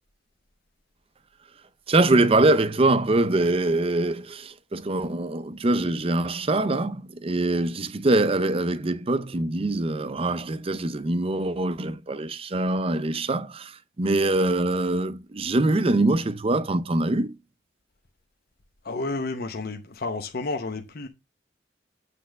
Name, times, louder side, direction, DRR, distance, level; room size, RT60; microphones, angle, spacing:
voice 1, 1.9-17.3, right 2 dB, 30° right, 0.5 m, -23 dB
voice 2, 18.8-21.1, left 3 dB, 55° left, 0.8 m, -31 dB
8.4 x 3.4 x 6.2 m
head